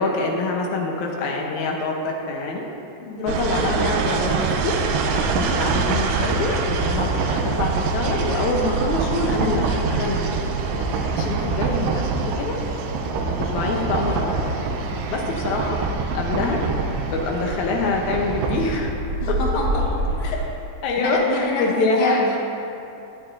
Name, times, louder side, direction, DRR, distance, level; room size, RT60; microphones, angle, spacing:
voice 1, 0.0-2.6 3.2-4.4 4.6-4.8 5.1-12.1 12.4-12.6 13.2-14.5 15.1-15.8 16.1-16.6 17.1-18.9 19.3-19.4 20.2-20.4 20.8-22.1, left 3 dB, 90° left, 0 dB, 1.7 m, -25 dB
voice 2, 3.0-3.7 19.2-19.8 20.2-20.3 20.9-22.4, left 2 dB, 55° left, -3 dB, 2.3 m, -28 dB
sound 1, 3.3-18.9, right 5 dB, 85° right, 2.9 m, -25 dB
sound 2, 5.1-20.5, right 1 dB, 55° right, 2.6 m, -33 dB
21.5 x 9.1 x 2.7 m, 2.9 s
omnidirectional pair, 4.9 m